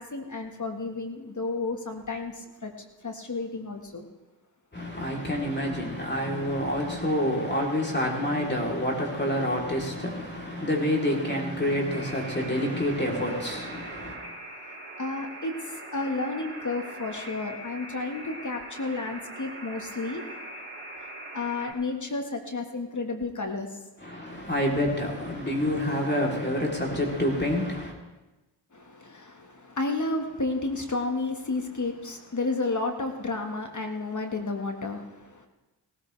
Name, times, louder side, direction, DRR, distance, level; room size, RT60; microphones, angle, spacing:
voice 1, 0.0-2.7 3.0-4.1 15.0-20.3 21.3-23.8 28.7-35.5, left 3 dB, 40° left, 1.7 m, -32 dB
voice 2, 4.7-14.2 24.0-27.9, left 1 dB, 20° left, 3.5 m, -28 dB
Alarm, 11.9-21.7, right 2 dB, 30° right, 4.6 m, -42 dB
18.5 x 13.5 x 3.4 m
cardioid pair, 50°, 46 cm